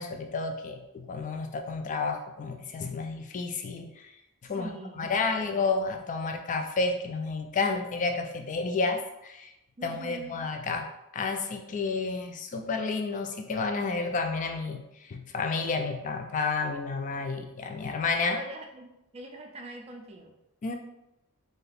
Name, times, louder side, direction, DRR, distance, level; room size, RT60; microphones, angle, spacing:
voice 1, 0.0-4.1 4.4-9.5 9.8-18.4 20.6-20.7, left 4 dB, 35° left, 5 dB, 0.3 m, -31 dB
voice 2, 4.6-5.4 9.8-10.4 18.3-20.3, right 1 dB, 30° right, 2 dB, 0.4 m, -43 dB
2.7 x 2.4 x 3.3 m, 0.88 s
head